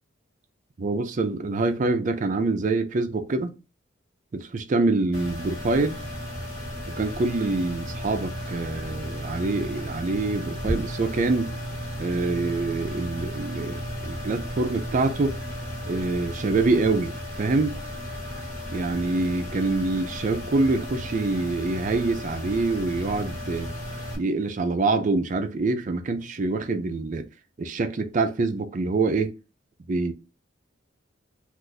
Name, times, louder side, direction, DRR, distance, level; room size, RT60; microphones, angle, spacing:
voice 1, 0.8-3.5 4.3-6.0 6.9-11.5 12.0-15.4 15.9-17.8 18.7-23.7 24.1-27.3 27.6-29.3 29.9-30.1, right 3 dB, 40° right, 0.4 m, -25 dB
sound 1, 5.1-24.2, equal, 45° left, 1.3 m, -34 dB
2.5 x 2.4 x 3.9 m
head